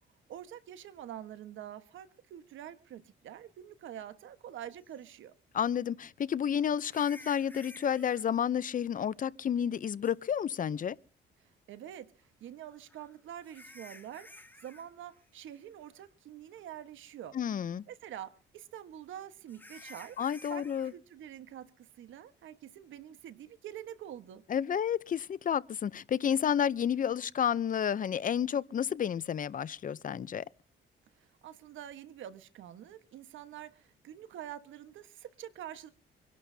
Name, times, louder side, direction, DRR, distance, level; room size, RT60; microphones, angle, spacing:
voice 1, 0.3-5.3 11.4-17.4 17.9-20.2 20.5-24.4 31.2-35.9, right 10 dB, 80° right, 1.3 m, -46 dB
sound 1, 4.9-5.0 6.8-8.2 10.0-10.1 12.7-14.9 15.1-15.5 15.9-16.0 16.6-16.7 19.5-20.9, left 2 dB, 10° left, 1.9 m, -53 dB
voice 2, 5.5-11.0 17.3-17.8 20.2-20.9 24.5-30.4, left 8 dB, 45° left, 0.6 m, -30 dB
25.5 x 11.5 x 2.8 m
cardioid pair, 90°, 20 cm